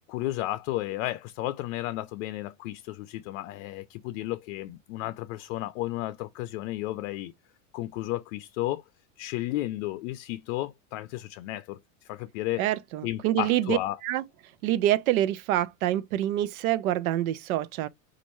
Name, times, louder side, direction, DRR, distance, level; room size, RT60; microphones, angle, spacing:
voice 1, 0.1-7.3 7.7-8.8 9.2-11.8 12.1-12.7 13.0-14.0, left 16 dB, 65° left, 0.5 m, -33 dB
voice 2, 12.6-13.8 14.0-14.2 14.6-17.9, right 13 dB, 85° right, 0.7 m, -26 dB
5.2 x 2.6 x 3.0 m
supercardioid pair, 160°, 41 cm